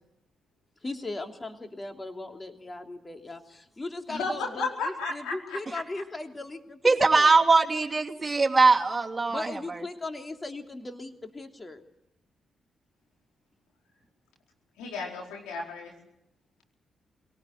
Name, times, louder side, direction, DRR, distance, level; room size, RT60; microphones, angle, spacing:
voice 1, 0.8-7.3 9.3-11.8, left 2 dB, 30° left, 5 dB, 3.1 m, -38 dB
voice 2, 4.1-5.8 14.8-15.9, left 3 dB, 90° left, 0 dB, 4.5 m, -33 dB
voice 3, 6.8-9.8, right 3 dB, 30° right, 1 dB, 2.8 m, -21 dB
22.5 x 18.5 x 9.4 m, 0.82 s
supercardioid pair, 45°, 0 cm